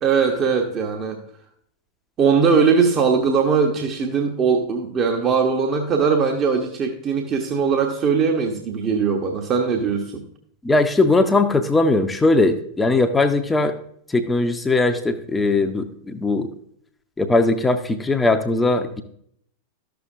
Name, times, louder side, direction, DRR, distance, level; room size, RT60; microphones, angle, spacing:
voice 1, 0.0-1.2 2.2-10.2, right 5 dB, 30° right, 2 dB, 1.0 m, -20 dB
voice 2, 10.6-13.7 14.1-16.5 17.2-19.0, left 2 dB, 10° left, 6 dB, 0.7 m, -19 dB
12.5 x 6.9 x 2.5 m, 0.66 s
figure-of-eight pair, 90°, 0 cm